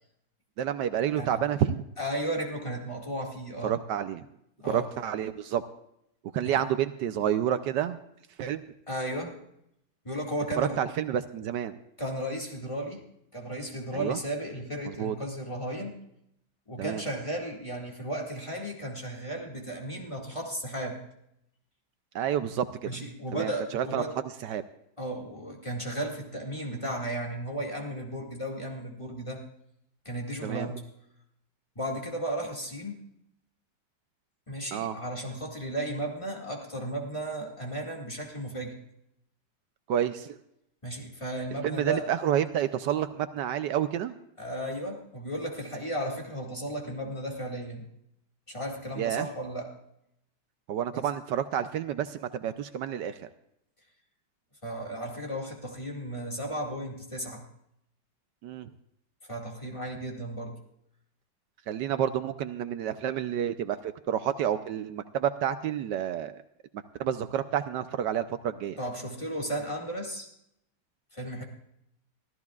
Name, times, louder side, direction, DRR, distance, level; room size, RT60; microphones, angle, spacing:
voice 1, 0.6-1.8 3.6-4.3 4.7-5.6 6.3-8.0 8.4-8.6 10.6-11.7 13.9-14.2 14.9-15.1 16.8-17.0 22.1-23.0 23.3-24.0 24.4-24.6 30.4-30.7 34.7-35.0 39.9-40.4 41.6-44.1 49.0-49.3 50.7-53.3 58.4-58.7 61.7-66.4 67.0-68.8, right 10 dB, 75° right, 11 dB, 1.2 m, -29 dB
voice 2, 2.0-3.8 4.6-4.9 6.4-6.6 8.9-9.4 10.0-10.8 12.0-13.0 13.3-16.0 16.7-21.0 22.8-24.2 25.0-29.4 30.1-30.8 31.8-33.0 34.5-38.7 40.8-42.1 44.4-47.9 48.5-49.7 50.9-51.1 54.6-57.4 59.2-60.6 68.8-70.3 71.1-71.4, right 1 dB, 15° left, 0 dB, 2.0 m, -34 dB
25.0 x 14.0 x 2.4 m, 0.77 s
omnidirectional pair, 2.0 m